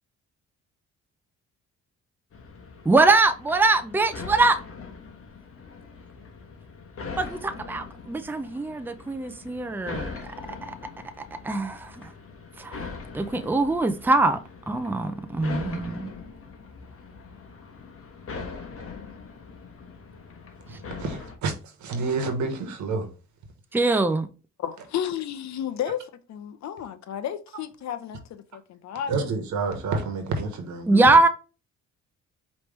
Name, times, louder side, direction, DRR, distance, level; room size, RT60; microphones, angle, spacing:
sound 1, 2.3-21.4, left 5 dB, 50° left, 1.2 m, -41 dB
voice 1, 2.9-4.6 7.2-10.2 10.6-10.8 11.4-11.9 12.6-12.9 13.1-14.4 14.7-16.1 23.7-24.3 30.9-31.3, right 3 dB, 5° right, 0.5 m, -22 dB
voice 2, 20.7-23.1 23.9-24.0 29.1-31.0, right 4 dB, 70° right, 1.2 m, -29 dB
voice 3, 24.6-26.0 26.3-29.4, left 9 dB, 65° left, 0.7 m, -32 dB
5.0 x 3.1 x 3.1 m
cardioid pair, 90°, 30 cm